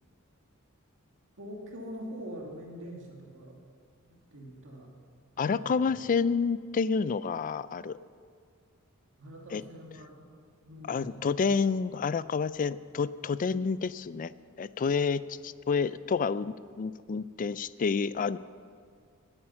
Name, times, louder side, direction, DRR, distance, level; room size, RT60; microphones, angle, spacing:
voice 1, 1.4-3.6 4.1-4.9 5.4-6.0 9.2-10.2 10.6-11.5, equal, 60° right, -1 dB, 2.4 m, -44 dB
voice 2, 5.4-8.0 9.5-9.6 10.9-14.3 14.6-18.4, left 5 dB, 40° left, 16 dB, 0.4 m, -29 dB
20.0 x 9.0 x 5.7 m, 2.1 s
head